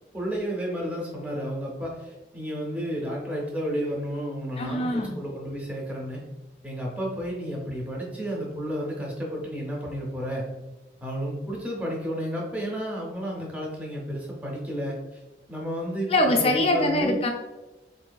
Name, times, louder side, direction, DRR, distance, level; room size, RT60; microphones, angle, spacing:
voice 1, 0.1-6.2 6.6-10.5 11.0-15.2 15.5-17.2, equal, 10° right, -3 dB, 0.7 m, -32 dB
voice 2, 4.6-5.1 16.1-17.3, left 1 dB, 30° left, 2 dB, 0.4 m, -23 dB
4.0 x 2.6 x 2.2 m, 1.1 s
head